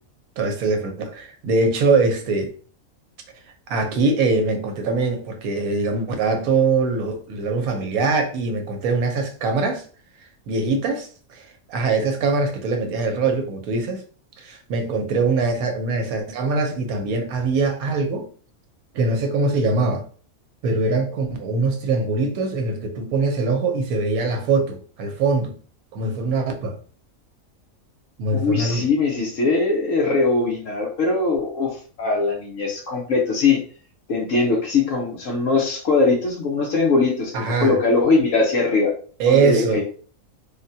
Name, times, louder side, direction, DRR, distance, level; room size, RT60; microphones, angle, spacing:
voice 1, 0.4-2.5 3.7-9.8 10.5-14.0 14.4-18.3 18.9-20.1 20.6-25.6 25.9-26.8 28.2-28.9 37.3-37.8 39.2-39.8, right 3 dB, 90° right, 1.1 m, -22 dB
voice 2, 28.3-31.7 32.0-33.6 34.1-38.9 39.3-39.8, left 3 dB, 70° left, 1.1 m, -21 dB
3.5 x 2.1 x 2.7 m
omnidirectional pair, 1.5 m